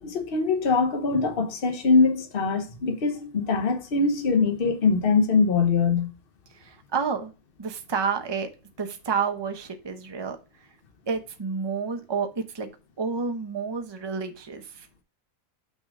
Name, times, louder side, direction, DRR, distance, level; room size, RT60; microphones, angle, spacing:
voice 1, 0.0-6.1, left 4 dB, 40° left, 1.2 m, -23 dB
voice 2, 6.5-7.3 7.6-8.5 8.8-10.4 11.1-12.7 13.0-14.9, right 5 dB, 25° right, 0.8 m, -30 dB
6.1 x 6.1 x 3.7 m
omnidirectional pair, 1.5 m